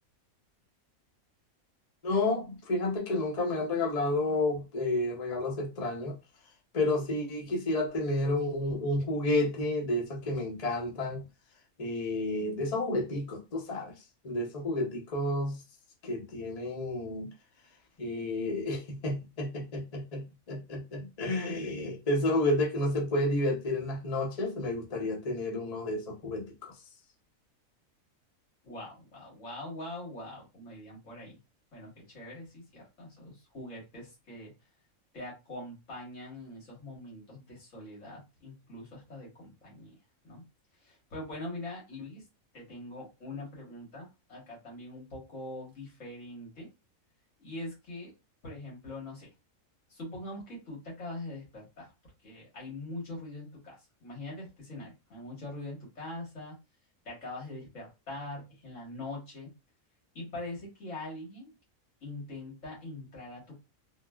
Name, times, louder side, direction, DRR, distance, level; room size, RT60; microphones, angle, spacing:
voice 1, 2.0-6.1 6.7-11.2 11.8-13.9 14.2-15.6 16.0-17.3 18.0-26.5, left 2 dB, 40° left, 0.6 m, -31 dB
voice 2, 28.6-31.4 31.7-34.5 35.1-40.0 40.2-40.4 40.8-42.2 42.5-46.7 47.4-48.1 48.4-49.3 49.9-51.9 52.2-56.6 57.0-59.5 60.1-61.5 62.0-63.6, left 2 dB, 65° left, 1.8 m, -43 dB
3.6 x 2.1 x 2.2 m
omnidirectional pair, 1.4 m